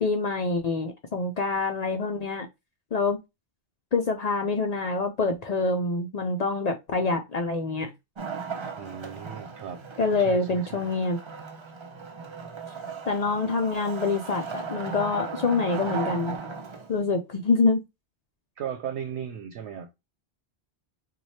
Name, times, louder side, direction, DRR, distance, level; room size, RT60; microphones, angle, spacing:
voice 1, 0.0-2.5 2.9-3.2 3.9-7.9 10.0-11.2 13.1-16.4 16.9-17.8, left 3 dB, 55° left, 0.5 m, -26 dB
Wood, 8.2-17.0, right 5 dB, 40° right, 0.5 m, -37 dB
voice 2, 8.7-9.8 10.2-10.9 18.6-19.9, right 8 dB, 80° right, 0.9 m, -36 dB
3.1 x 2.2 x 4.1 m
omnidirectional pair, 1.1 m